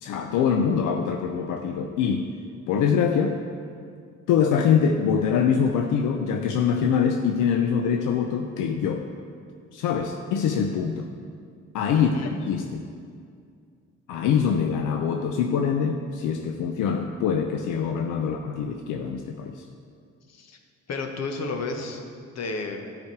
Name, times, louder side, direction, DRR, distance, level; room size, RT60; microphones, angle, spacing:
voice 1, 0.0-2.3 2.7-3.4 4.3-9.0 9.7-11.1 11.7-12.9 14.1-19.6, left 7 dB, 90° left, 5 dB, 0.6 m, -24 dB
voice 2, 11.9-12.3 20.3-20.6 20.9-22.0 22.3-22.9, left 3 dB, 60° left, 4 dB, 1.2 m, -32 dB
13.0 x 5.1 x 4.6 m, 2.3 s
cardioid pair, 90°, 30 cm